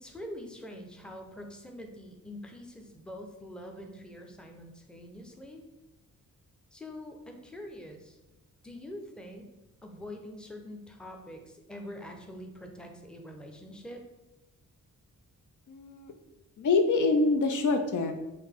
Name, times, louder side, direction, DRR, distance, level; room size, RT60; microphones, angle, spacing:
voice 1, 0.0-5.6 6.7-8.2 8.6-9.5 9.8-14.0, left 1 dB, 5° left, 3 dB, 0.6 m, -44 dB
voice 2, 15.7-16.1 16.6-18.1, left 3 dB, 60° left, 5 dB, 0.5 m, -25 dB
3.8 x 2.6 x 3.6 m, 1.0 s
cardioid pair, 75°, 34 cm